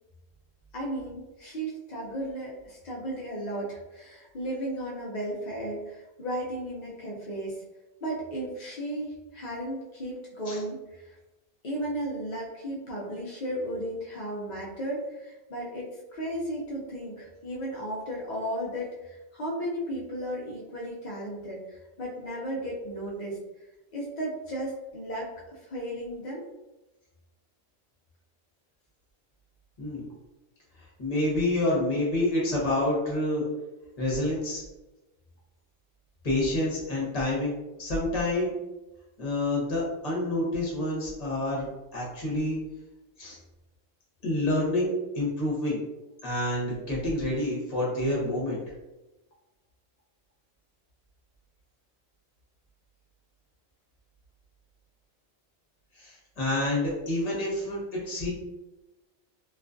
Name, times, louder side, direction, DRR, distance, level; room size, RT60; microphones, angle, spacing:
voice 1, 0.7-7.6 8.0-11.2 11.6-23.4 23.9-26.4, right 1 dB, 75° left, -4 dB, 0.4 m, -35 dB
voice 2, 31.0-33.5 34.0-34.6 36.2-37.5 37.8-38.6 39.2-42.6 43.2-43.4 44.2-45.8 46.2-48.6 56.0-58.3, left 1 dB, 35° left, -5 dB, 0.7 m, -28 dB
2.4 x 2.3 x 2.4 m, 1.0 s
omnidirectional pair, 1.4 m